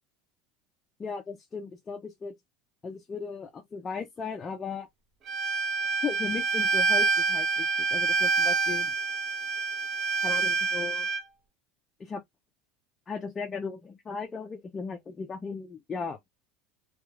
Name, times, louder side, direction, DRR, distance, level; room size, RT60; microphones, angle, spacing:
voice 1, 1.0-2.4 2.8-4.9 6.0-8.9 10.2-11.1 12.0-12.2 13.1-16.2, left 5 dB, 20° left, 0.5 m, -36 dB
Bowed string instrument, 5.3-11.2, right 3 dB, 40° right, 0.6 m, -27 dB
3.0 x 2.3 x 2.3 m
supercardioid pair, 145°, 0 cm